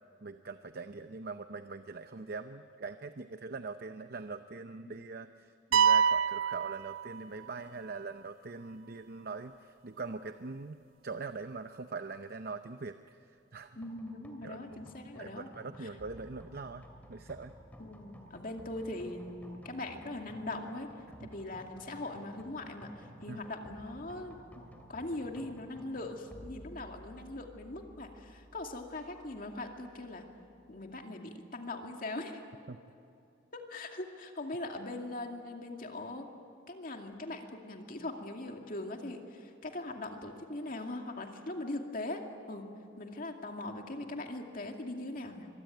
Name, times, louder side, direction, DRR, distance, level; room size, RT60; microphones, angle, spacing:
voice 1, 0.2-13.8 14.4-14.9 15.2-17.5 21.2-21.3 23.3-23.5 32.7-32.8, right 4 dB, 50° right, 9 dB, 0.7 m, -43 dB
sound 1, 5.7-7.6, right 7 dB, 85° right, 0.5 m, -27 dB
voice 2, 13.8-15.5 15.8-15.9 17.8-20.9 21.2-24.6 24.9-30.3 30.7-32.4 33.5-36.3 36.7-42.7 43.0-45.5, left 2 dB, 45° left, 3 dB, 2.4 m, -41 dB
sound 2, 13.8-31.0, equal, 10° left, 2.6 m, -54 dB
25.0 x 23.0 x 9.3 m, 2.6 s
head